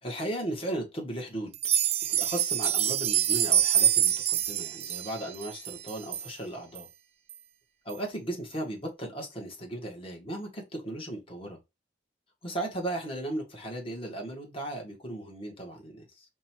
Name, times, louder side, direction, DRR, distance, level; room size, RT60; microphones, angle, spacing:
voice 1, 0.0-1.5 2.1-6.9 7.8-11.6 12.4-16.2, right 1 dB, 35° left, 1.6 m, -36 dB
sound 1, 1.5-6.3 6.8-6.9 7.3-7.4 7.9-8.0, right 10 dB, 35° right, 0.4 m, -26 dB
5.4 x 2.6 x 2.8 m
head